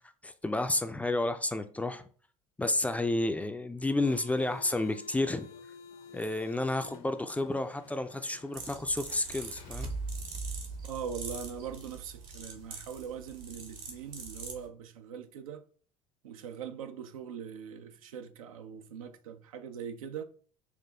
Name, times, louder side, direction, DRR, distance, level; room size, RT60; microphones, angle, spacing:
voice 1, 0.2-2.0 2.6-5.5 6.1-9.9, left 2 dB, 10° left, 0.3 m, -31 dB
sound 1, 3.8-10.2, left 6 dB, 60° left, 0.6 m, -52 dB
sound 2, 8.5-14.7, right 4 dB, 65° right, 1.1 m, -44 dB
sound 3, 9.2-12.6, right 3 dB, 30° right, 0.6 m, -41 dB
voice 2, 10.8-15.6 16.2-20.2, right 7 dB, 80° right, 0.4 m, -41 dB
5.7 x 2.4 x 2.3 m
hypercardioid pair, 65°, 18 cm